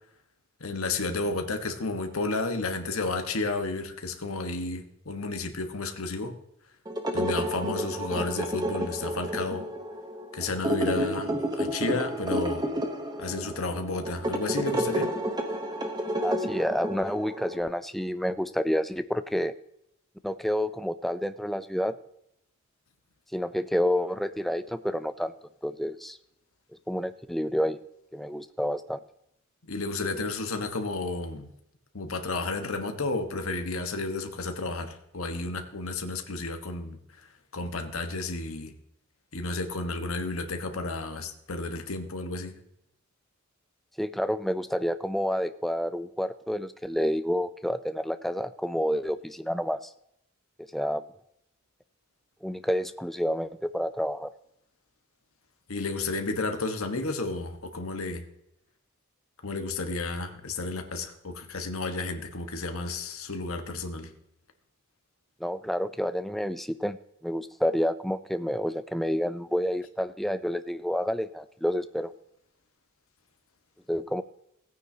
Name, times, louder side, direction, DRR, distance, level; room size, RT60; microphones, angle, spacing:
voice 1, 0.6-6.3 7.1-9.7 10.3-12.7 13.2-15.1 29.6-31.5 31.9-37.0 37.5-38.7 39.3-42.6 55.7-58.2 59.4-64.1, left 3 dB, 80° left, 6 dB, 1.3 m, -32 dB
sound 1, 6.9-17.6, equal, 20° right, 1.0 m, -31 dB
voice 2, 16.2-19.5 20.2-22.0 23.3-25.3 25.6-26.2 26.9-27.8 28.1-29.0 44.0-49.8 50.7-51.0 52.4-54.3 65.4-67.0 67.2-72.1 73.9-74.2, equal, ahead, 11 dB, 0.3 m, -29 dB
16.5 x 9.3 x 2.8 m, 0.78 s
head